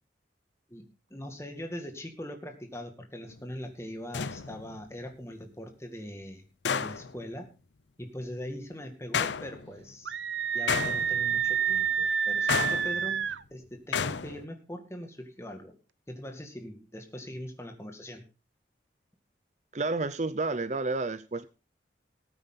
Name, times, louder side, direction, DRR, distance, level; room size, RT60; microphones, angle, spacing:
voice 1, 1.1-6.4 6.7-7.5 8.0-10.1 10.5-15.8 16.1-18.2, equal, 15° left, 4 dB, 2.1 m, -41 dB
sound 1, 3.3-3.4 4.1-4.8 6.6-7.2 9.1-9.8 10.7-11.5 12.5-13.3 13.9-14.4, left 6 dB, 80° left, 0.6 m, -31 dB
Screaming, 10.1-13.4, right 8 dB, 90° right, 0.7 m, -28 dB
voice 2, 19.7-21.5, right 3 dB, 40° right, 13 dB, 0.6 m, -30 dB
18.5 x 9.0 x 3.9 m, 0.32 s
head